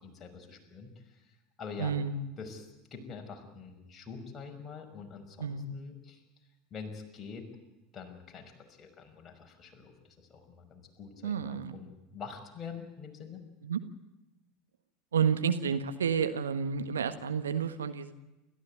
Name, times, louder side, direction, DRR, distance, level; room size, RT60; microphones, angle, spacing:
voice 1, 0.0-1.9 2.4-6.2 6.7-7.5 7.9-13.4, left 5 dB, 30° left, 3 dB, 5.9 m, -45 dB
voice 2, 1.8-2.2 5.4-5.7 11.2-11.8 13.6-13.8 15.1-18.1, right 6 dB, 75° right, 10 dB, 1.5 m, -30 dB
29.0 x 14.5 x 9.4 m, 1.0 s
figure-of-eight pair, 75°, 0 cm